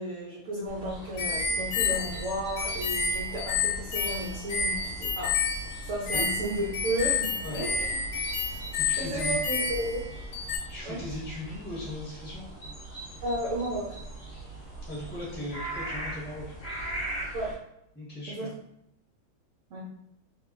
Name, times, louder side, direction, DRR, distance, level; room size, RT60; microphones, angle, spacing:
voice 1, 0.0-5.4 5.8-8.0 9.0-10.1 10.8-11.0 13.2-14.0 17.3-17.6 18.3-18.5 19.7-19.8, right 1 dB, 75° right, -6 dB, 0.7 m, -33 dB
sound 1, 0.7-17.6, right 2 dB, 55° left, 0.7 m, -41 dB
sound 2, 1.2-10.6, left 4 dB, 75° left, 1.2 m, -30 dB
voice 2, 8.8-9.4 10.7-12.5 14.8-16.5 17.9-18.5, left 1 dB, 10° left, -7 dB, 0.8 m, -38 dB
2.8 x 2.6 x 2.4 m, 0.77 s
omnidirectional pair, 2.1 m